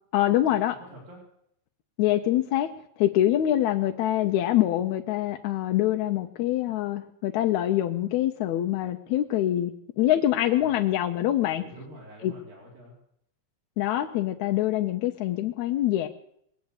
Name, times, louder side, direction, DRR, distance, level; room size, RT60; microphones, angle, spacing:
voice 1, 0.1-0.8 2.0-2.7 3.0-11.6 12.2-12.3 13.8-16.1, left 13 dB, 75° left, 4 dB, 1.8 m, -25 dB
voice 2, 0.7-1.2 10.6-11.0 11.5-13.0, right 1 dB, 80° right, -3 dB, 5.3 m, -47 dB
21.0 x 8.2 x 8.1 m, 0.73 s
omnidirectional pair, 3.9 m